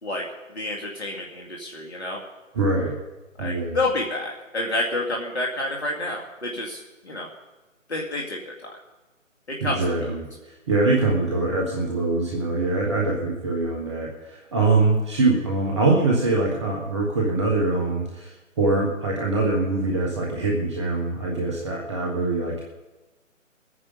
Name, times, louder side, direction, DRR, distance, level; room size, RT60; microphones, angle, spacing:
voice 1, 0.0-2.2 3.4-7.3 7.9-8.8 9.5-9.9, left 2 dB, 55° left, -2 dB, 2.4 m, -29 dB
voice 2, 2.5-2.9 3.4-3.8 9.6-22.7, right 3 dB, 20° right, -1 dB, 1.4 m, -23 dB
21.0 x 9.8 x 5.4 m, 1.1 s
figure-of-eight pair, 145°, 39 cm